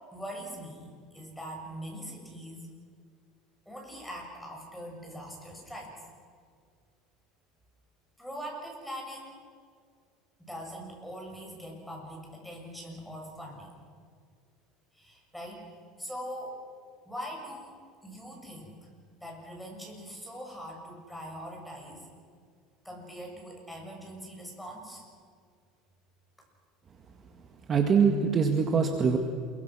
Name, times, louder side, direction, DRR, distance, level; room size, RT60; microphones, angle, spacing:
voice 1, 0.1-2.7 3.7-5.9 8.2-9.4 10.4-13.7 14.9-15.7 16.0-16.6 17.1-18.9 19.2-22.1 22.8-25.0, equal, ahead, 0 dB, 6.8 m, -42 dB
voice 2, 27.7-29.2, right 6 dB, 30° right, 4 dB, 1.9 m, -23 dB
28.0 x 23.5 x 6.3 m, 2.1 s
supercardioid pair, 135°, 0 cm